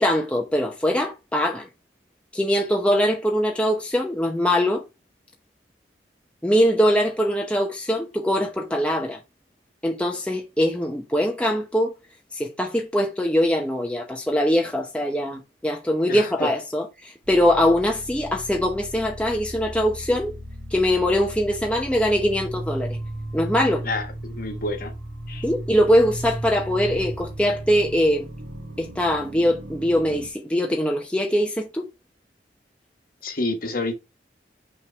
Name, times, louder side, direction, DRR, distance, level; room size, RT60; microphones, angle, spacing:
voice 1, 0.0-1.7 2.3-4.8 6.4-9.2 9.8-11.9 12.3-20.3 20.7-23.0 23.3-23.8 25.4-28.3 28.8-31.9, equal, 5° left, 0.8 m, -22 dB
sound 1, 17.2-30.3, right 1 dB, 75° right, 1.5 m, -35 dB
voice 2, 23.8-24.9 25.3-25.4 33.2-33.9, left 2 dB, 50° left, 1.4 m, -28 dB
5.8 x 3.6 x 4.6 m
head